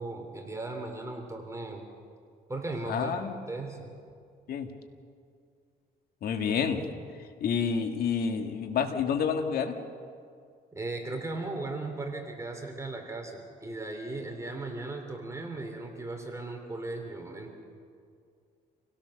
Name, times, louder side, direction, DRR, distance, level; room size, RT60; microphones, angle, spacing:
voice 1, 0.0-1.8 2.5-3.9 10.7-17.6, right 2 dB, 15° right, 3 dB, 3.3 m, -37 dB
voice 2, 2.9-3.4 4.5-4.7 6.2-6.8 7.4-9.7, left 6 dB, 65° left, 5 dB, 2.0 m, -28 dB
28.0 x 17.5 x 6.6 m, 2.2 s
cardioid pair, 100°, 17 cm